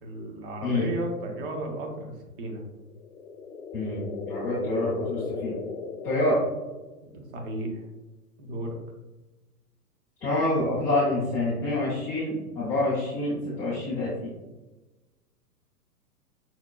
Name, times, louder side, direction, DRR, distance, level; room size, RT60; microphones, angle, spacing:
voice 1, 0.0-2.6 7.1-7.8 8.4-8.8, right 1 dB, 40° right, 2 dB, 0.8 m, -34 dB
sound 1, 2.9-7.1, left 4 dB, 60° left, 0.5 m, -36 dB
voice 2, 3.7-5.5 6.0-6.4 10.2-14.3, left 2 dB, 5° left, -13 dB, 0.4 m, -27 dB
5.7 x 2.2 x 2.3 m, 1.1 s
figure-of-eight pair, 110°, 46 cm